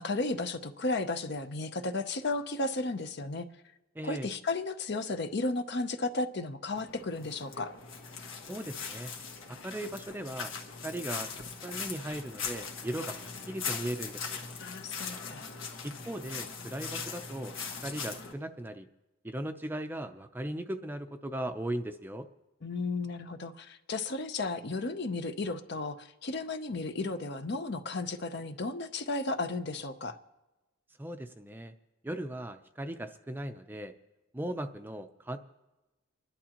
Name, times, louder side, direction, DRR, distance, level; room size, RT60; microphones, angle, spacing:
voice 1, 0.0-3.5 4.0-7.7 14.6-15.5 22.6-30.2, left 3 dB, 55° left, 10 dB, 0.7 m, -34 dB
voice 2, 4.0-4.3 8.5-9.1 9.6-10.5 10.8-11.3 11.6-14.4 15.8-17.5 17.8-18.9 19.2-22.3 31.0-31.7 32.0-33.9 34.3-35.4, right 1 dB, 10° right, 8 dB, 0.5 m, -38 dB
sound 1, 6.7-18.3, left 5 dB, 75° left, 1.6 m, -40 dB
29.5 x 11.0 x 2.9 m, 1.1 s
head